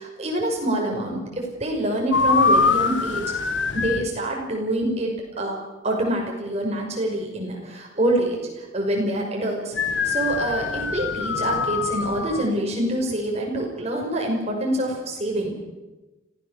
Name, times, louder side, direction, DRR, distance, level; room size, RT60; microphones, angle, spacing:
voice 1, 0.0-3.3 3.7-5.6 5.8-15.6, right 1 dB, 35° right, 0 dB, 6.0 m, -26 dB
sound 1, 2.1-4.1 9.7-12.5, left 4 dB, 75° left, 1.4 m, -23 dB
25.5 x 17.0 x 7.1 m, 1.1 s
head